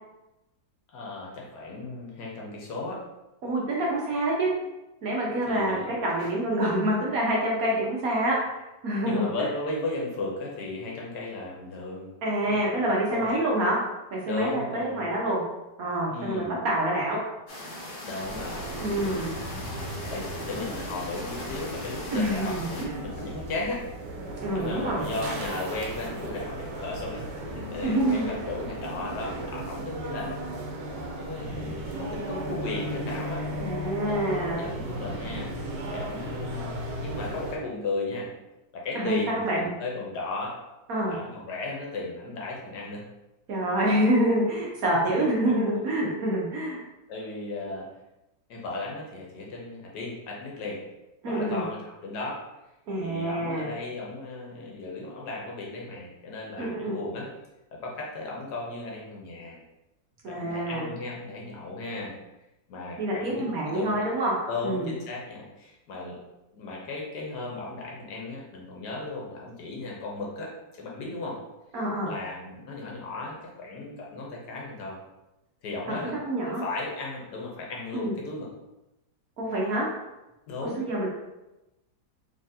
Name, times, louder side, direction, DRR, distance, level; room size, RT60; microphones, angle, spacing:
voice 1, 0.9-3.0 5.5-6.3 9.0-12.1 12.5-12.6 13.1-13.3 14.3-15.1 16.1-16.6 18.0-19.5 20.1-23.8 24.5-30.7 31.2-33.4 34.0-35.5 35.9-38.3 38.7-40.6 41.1-43.0 45.0-45.5 47.1-47.9 48.5-50.8 51.2-52.4 53.0-57.3 57.7-59.6 60.3-62.1 62.7-64.0 64.5-66.2 66.5-71.4 72.0-75.0 75.6-78.5 80.5-80.9, left 2 dB, 70° left, -2 dB, 1.3 m, -36 dB
voice 2, 3.4-4.5 5.0-9.3 12.2-13.8 14.1-15.4 15.8-17.2 18.8-19.3 22.1-23.0 24.4-25.0 27.8-28.3 33.6-34.6 38.9-39.8 40.9-41.1 43.5-46.8 51.2-51.6 52.9-53.7 56.6-56.9 60.2-60.9 63.0-64.3 64.6-64.9 71.7-72.1 75.9-76.6 77.9-78.1 79.4-79.9 80.8-81.1, right 1 dB, 60° right, -3 dB, 1.2 m, -27 dB
sound 1, 17.5-22.8, left 1 dB, 50° left, 0.6 m, -39 dB
sound 2, 18.2-37.6, right 1 dB, 80° right, 1.3 m, -36 dB
3.9 x 3.2 x 2.7 m, 0.98 s
omnidirectional pair, 1.9 m